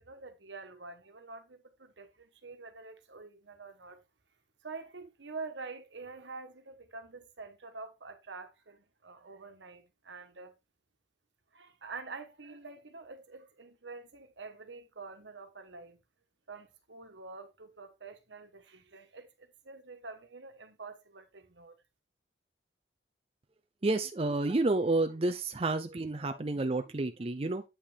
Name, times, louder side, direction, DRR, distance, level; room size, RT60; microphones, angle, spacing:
voice 1, 0.1-4.0 4.6-10.5 11.5-16.0 16.5-21.7, right 4 dB, 85° right, 1.4 m, -47 dB
voice 2, 23.8-27.6, right 2 dB, 30° right, 0.6 m, -30 dB
8.4 x 5.6 x 3.5 m
head